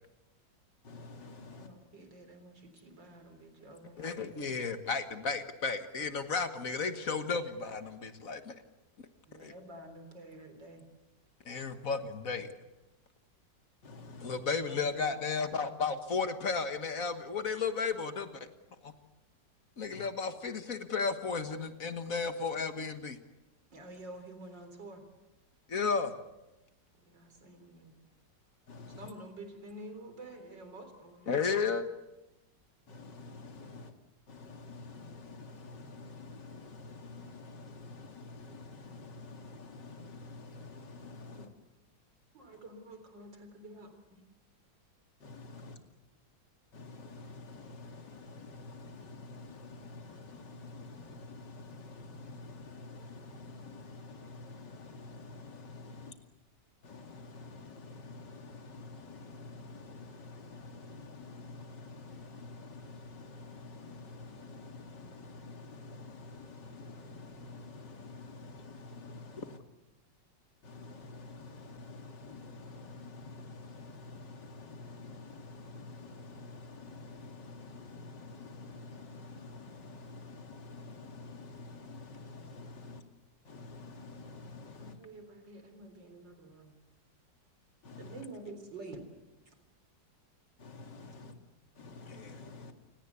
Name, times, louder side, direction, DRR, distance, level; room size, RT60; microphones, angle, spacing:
voice 1, 0.8-1.7 13.8-14.4 19.9-20.0 28.7-29.1 32.9-33.9 34.3-41.5 45.2-45.8 46.7-56.1 56.8-69.6 70.6-83.0 83.4-85.0 87.8-88.2 90.6-91.3 91.8-92.7, left 3 dB, 70° left, 5 dB, 3.0 m, -48 dB
voice 2, 1.5-4.3 9.3-10.9 14.7-15.5 23.7-25.0 27.1-27.9 29.0-31.8 41.3-41.5 42.3-44.2 84.8-86.8 88.0-89.0 89.5-89.6, right 2 dB, 80° right, 8 dB, 4.4 m, -49 dB
voice 3, 4.0-8.5 9.3-9.5 11.5-12.5 14.2-18.3 18.8-18.9 19.8-23.2 25.7-26.1 31.3-31.8 92.1-92.4, left 5 dB, 50° left, 8 dB, 1.8 m, -33 dB
29.0 x 18.5 x 8.3 m, 1.0 s
omnidirectional pair, 1.9 m